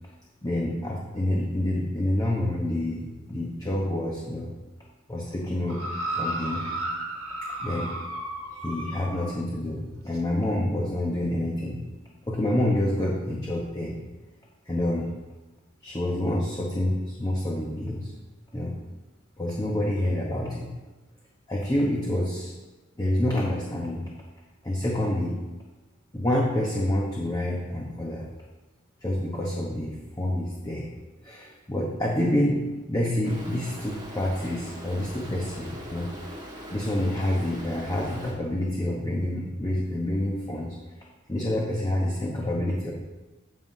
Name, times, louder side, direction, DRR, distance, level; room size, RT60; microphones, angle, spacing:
voice 1, 0.4-4.5 5.1-5.8 6.2-6.6 7.6-7.9 8.6-11.8 12.3-14.0 14.7-15.1 15.8-18.1 18.5-18.7 19.4-20.7 21.5-22.5 23.0-24.1 24.6-25.4 26.1-28.3 29.0-30.9 31.2-32.6 32.9-36.1 36.7-40.8 41.3-42.9, left 1 dB, 20° left, -3 dB, 0.9 m, -27 dB
sound 1, 5.7-9.3 10.1-10.2, right 1 dB, 85° right, 1.3 m, -33 dB
Stream, 33.2-38.3, equal, 20° right, 1.6 m, -41 dB
15.0 x 5.6 x 2.7 m, 1.1 s
head